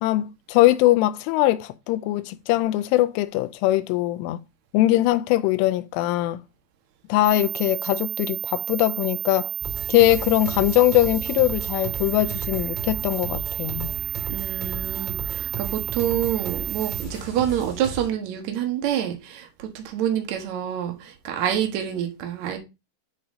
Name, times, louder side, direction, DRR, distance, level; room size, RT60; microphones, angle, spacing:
voice 1, 0.0-4.4 4.7-6.4 7.1-9.5 9.9-13.9, left 16 dB, 90° left, 3.1 m, -21 dB
sound 1, 7.2-17.0, right 13 dB, 50° right, 2.0 m, -31 dB
sound 2, 9.6-18.1, right 3 dB, 30° right, 0.8 m, -35 dB
voice 2, 14.3-22.6, right 10 dB, 80° right, 1.6 m, -27 dB
9.9 x 4.1 x 4.9 m
omnidirectional pair, 5.6 m